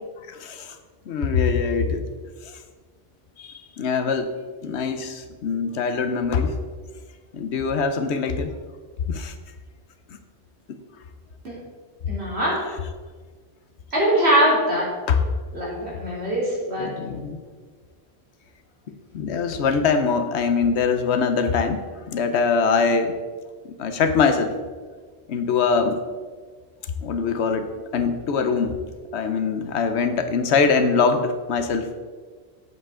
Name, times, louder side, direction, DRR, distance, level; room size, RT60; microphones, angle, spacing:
voice 1, 0.2-0.8 1.1-2.0 2.4-2.6 3.4-4.3 4.6-6.6 7.3-8.5 9.1-9.3 10.1-10.2 10.7-10.8 12.7-12.8 15.1-15.2 16.8-17.4 18.9-23.2 23.6-24.5 25.3-26.0 27.0-28.8 29.1-31.9, left 5 dB, 80° left, 9 dB, 1.0 m, -23 dB
voice 2, 12.1-12.6 13.9-14.8 15.5-16.9, right 1 dB, 70° right, -6 dB, 3.2 m, -21 dB
8.0 x 7.5 x 3.7 m, 1.5 s
omnidirectional pair, 1.1 m